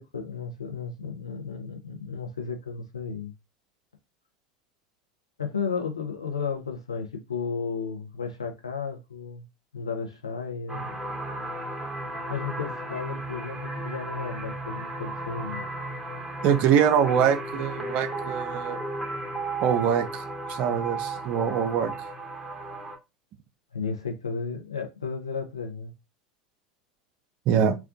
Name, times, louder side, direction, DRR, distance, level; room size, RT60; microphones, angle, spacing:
voice 1, 0.0-3.3 5.4-9.5 9.7-10.9 12.3-15.6 23.7-25.9, left 5 dB, 85° left, 0.5 m, -33 dB
sound 1, 10.7-23.0, right 2 dB, 15° right, 0.7 m, -34 dB
voice 2, 16.4-18.8 19.6-20.2 20.5-21.9 27.5-27.8, right 8 dB, 50° right, 0.4 m, -23 dB
2.4 x 2.2 x 2.4 m
figure-of-eight pair, 80°, 3 cm